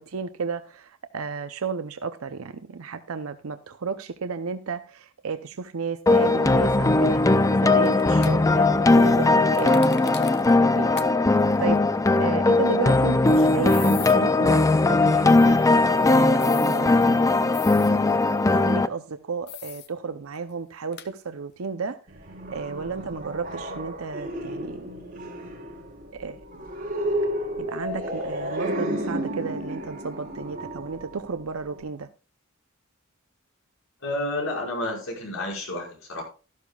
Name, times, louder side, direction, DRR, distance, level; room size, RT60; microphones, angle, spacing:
voice 1, 0.0-7.2 7.5-10.9 11.2-11.8 12.1-15.6 16.1-17.5 18.5-22.0 22.5-24.9 26.1-26.4 27.6-32.1, right 5 dB, 85° right, 10 dB, 0.7 m, -33 dB
sound 1, 6.1-18.9, left 2 dB, 15° left, 0.4 m, -19 dB
sound 2, 7.8-8.3 9.5-10.5 11.0-11.1 11.4-11.5 13.6-14.1 16.4-16.8 17.5-17.9 19.5-19.9 20.3-20.4 20.9-21.1, left 11 dB, 55° left, 0.8 m, -39 dB
sound 3, 22.1-31.8, right 1 dB, 40° right, 4.3 m, -32 dB
voice 2, 34.0-36.2, left 1 dB, 75° left, -1 dB, 5.6 m, -30 dB
13.0 x 12.0 x 2.4 m, 0.34 s
head